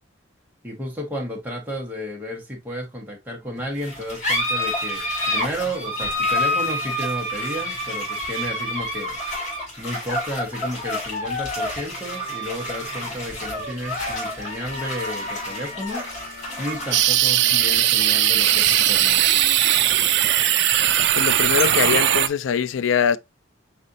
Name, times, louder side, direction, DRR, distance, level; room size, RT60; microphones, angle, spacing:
voice 1, 0.6-9.2 9.8-16.1 16.6-19.4, equal, 10° right, 1.2 m, -32 dB
sound 1, 3.4-18.8, equal, 40° right, 1.2 m, -46 dB
sound 2, 3.8-20.8, left 1 dB, 35° left, 2.1 m, -29 dB
sound 3, 16.9-22.3, right 11 dB, 60° right, 0.4 m, -18 dB
voice 2, 21.1-23.2, left 7 dB, 70° left, 0.3 m, -22 dB
4.2 x 4.2 x 2.6 m
head